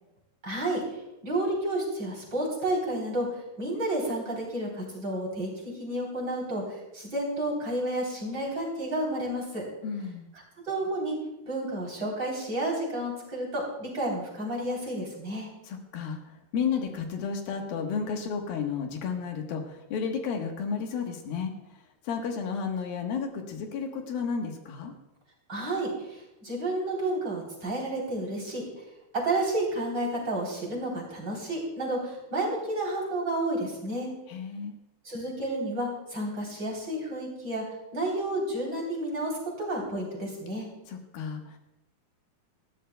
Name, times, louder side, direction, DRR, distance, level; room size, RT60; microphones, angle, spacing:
voice 1, 0.4-1.0 1.2-9.6 10.7-11.2 11.5-15.5 25.5-28.6 29.1-34.1 35.0-37.6 37.9-40.7, right 1 dB, 30° right, -2 dB, 3.8 m, -31 dB
voice 2, 9.8-10.3 15.6-24.9 34.3-34.8 40.9-41.6, left 6 dB, 85° left, 3 dB, 3.2 m, -32 dB
20.0 x 14.0 x 2.3 m, 0.91 s
omnidirectional pair, 4.1 m